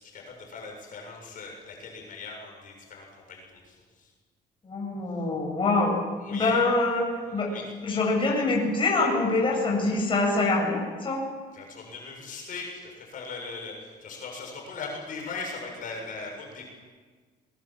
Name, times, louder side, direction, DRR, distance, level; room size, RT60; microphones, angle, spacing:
voice 1, 0.0-4.1 6.2-6.6 7.3-7.7 11.5-16.6, left 4 dB, 55° left, 0 dB, 7.4 m, -39 dB
voice 2, 4.6-6.0 6.3-7.5 7.8-11.2, left 3 dB, 30° left, -1 dB, 7.7 m, -25 dB
23.0 x 22.5 x 7.7 m, 1.5 s
cardioid pair, 110°, 17 cm